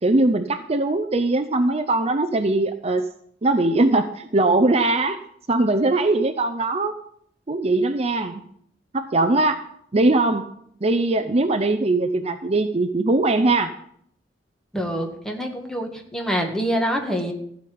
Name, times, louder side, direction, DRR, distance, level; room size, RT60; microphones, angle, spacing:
voice 1, 0.0-3.1 3.4-5.2 5.5-7.0 7.5-8.4 8.9-9.6 9.9-10.5 10.8-13.8, right 2 dB, 35° right, 9 dB, 0.6 m, -21 dB
voice 2, 14.7-17.3, equal, 5° left, 2 dB, 1.7 m, -26 dB
14.5 x 5.1 x 9.5 m, 0.68 s
head